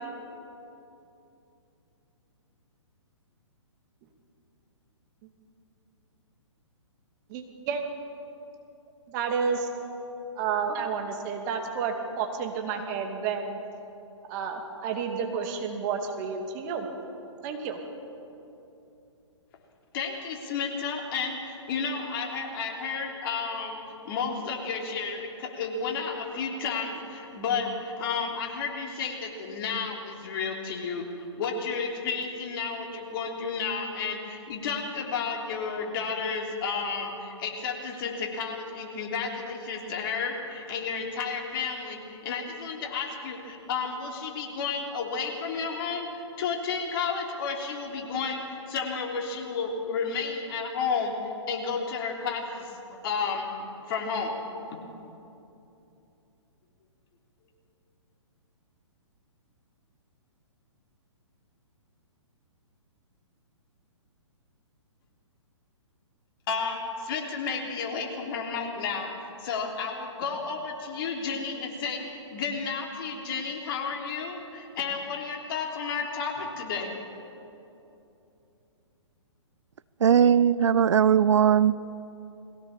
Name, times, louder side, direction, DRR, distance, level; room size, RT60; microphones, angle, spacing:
voice 1, 7.3-7.8 9.1-9.7 10.4-13.6 14.3-16.9 17.4-17.8, right 6 dB, 35° right, 4 dB, 2.5 m, -30 dB
voice 2, 19.9-23.8 24.0-31.0 31.4-51.1 51.5-52.7 53.0-53.5 53.9-54.4 54.7-54.8 66.5-69.1 69.4-76.9, left 5 dB, 45° left, 1 dB, 3.4 m, -32 dB
voice 3, 80.0-81.7, right 8 dB, 70° right, 19 dB, 0.5 m, -19 dB
21.0 x 17.0 x 7.3 m, 2.8 s
figure-of-eight pair, 130°, 16 cm